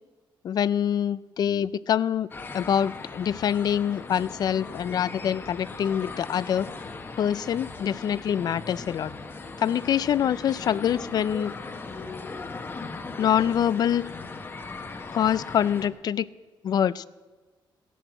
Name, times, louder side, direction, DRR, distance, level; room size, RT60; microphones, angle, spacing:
voice 1, 0.4-2.3 2.5-6.7 7.2-9.1 9.6-11.5 13.2-14.1 15.1-16.3 16.6-17.1, left 9 dB, 50° left, 19 dB, 0.4 m, -25 dB
sound 1, 2.3-15.9, left 3 dB, 25° left, 1.1 m, -38 dB
16.5 x 11.0 x 7.8 m, 1.3 s
wide cardioid pair, 180°, 9 cm